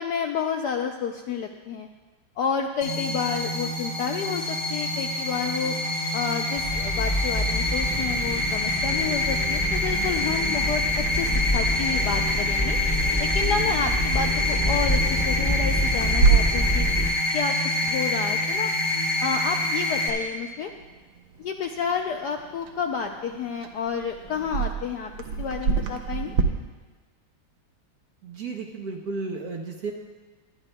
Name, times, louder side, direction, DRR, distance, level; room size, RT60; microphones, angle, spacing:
voice 1, 0.0-1.9 2.4-5.8 6.1-12.8 13.2-16.9 17.3-17.6 17.8-18.7 19.2-20.7 21.4-25.1 25.4-26.3, left 6 dB, 75° left, 3 dB, 0.9 m, -30 dB
sound 1, 2.8-20.1, left 1 dB, 55° left, 2.5 m, -26 dB
Accelerating revving vroom, 6.6-17.1, left 1 dB, 25° left, 1.8 m, -27 dB
Clock, 16.0-26.4, right 5 dB, 75° right, 1.5 m, -29 dB
voice 2, 28.2-29.9, right 4 dB, 60° right, 2 dB, 1.1 m, -33 dB
20.5 x 10.5 x 2.2 m, 1.3 s
omnidirectional pair, 2.2 m